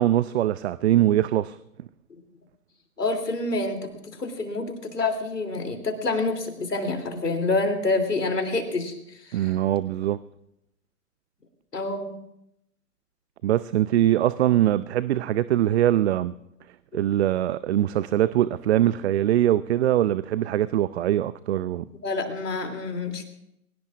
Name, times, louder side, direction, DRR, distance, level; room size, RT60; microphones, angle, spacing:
voice 1, 0.0-1.6 9.3-10.2 13.4-16.3 16.9-21.9, right 12 dB, 45° right, 17 dB, 0.5 m, -22 dB
voice 2, 3.0-9.0 9.2-9.5 11.7-12.2 22.0-23.2, left 3 dB, 90° left, 5 dB, 3.0 m, -27 dB
22.5 x 19.0 x 2.4 m, 0.82 s
hypercardioid pair, 125°, 46 cm